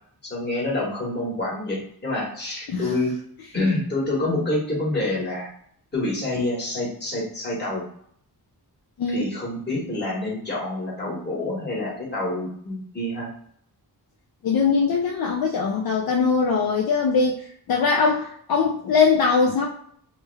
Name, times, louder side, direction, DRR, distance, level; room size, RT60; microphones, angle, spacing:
voice 1, 0.3-3.1 3.5-5.5 5.9-7.8 9.1-13.3, left 2 dB, 25° left, -5 dB, 1.3 m, -27 dB
voice 2, 9.0-9.3 14.4-19.7, left 5 dB, 60° left, -1 dB, 0.5 m, -21 dB
3.2 x 2.2 x 3.2 m, 0.65 s
wide cardioid pair, 140°, 40 cm